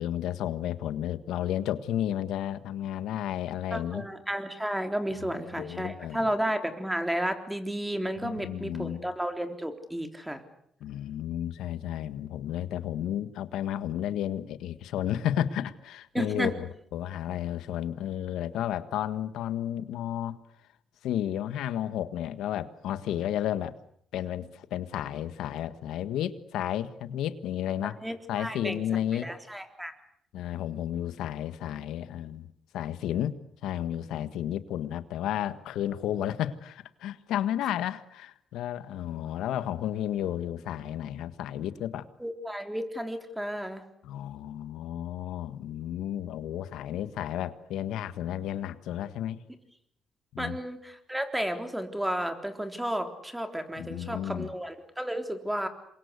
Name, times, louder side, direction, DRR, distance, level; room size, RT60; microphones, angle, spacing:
voice 1, 0.0-4.0 5.2-6.3 8.2-9.1 10.8-20.4 21.0-23.7 24.1-28.0 28.3-29.3 30.3-32.5 32.7-33.3 33.6-42.0 44.0-49.4 50.3-50.6 53.8-54.5, left 11 dB, 85° left, 13 dB, 1.6 m, -32 dB
voice 2, 3.7-10.4 16.1-16.5 27.8-28.9 29.1-29.9 42.2-43.8 50.4-55.7, equal, 5° right, 7 dB, 3.7 m, -32 dB
27.5 x 23.0 x 8.3 m, 0.70 s
cardioid pair, 90°, 0 cm